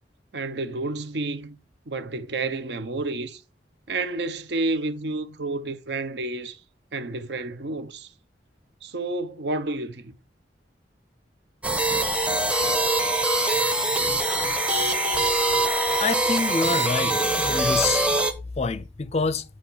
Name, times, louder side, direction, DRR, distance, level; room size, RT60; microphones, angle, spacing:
voice 1, 0.3-1.6 1.9-3.4 3.9-6.6 6.9-8.1 8.8-10.1, right 2 dB, 65° right, 0.6 m, -30 dB
sound 1, 11.6-18.3, right 2 dB, 5° right, 0.8 m, -23 dB
voice 2, 16.0-17.2 17.4-18.1 18.6-19.4, left 4 dB, 35° left, 0.4 m, -26 dB
8.4 x 2.9 x 6.0 m
head